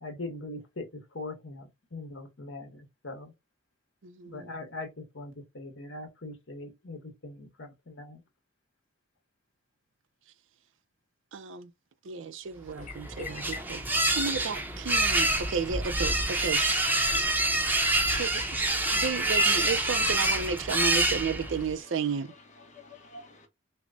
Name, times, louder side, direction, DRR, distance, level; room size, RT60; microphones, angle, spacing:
voice 1, 0.0-3.3 4.2-8.2, left 2 dB, 70° left, 1.3 m, -41 dB
voice 2, 4.0-4.5 11.3-11.7 12.0-13.8 14.2-16.8 18.1-18.4 18.7-22.3, right 5 dB, 75° right, 0.5 m, -33 dB
voice 3, 12.8-13.7 16.1-17.5 21.4-23.5, left 4 dB, 40° left, 1.1 m, -45 dB
sound 1, 12.8-21.7, right 2 dB, 10° right, 0.6 m, -27 dB
6.0 x 2.1 x 2.6 m
head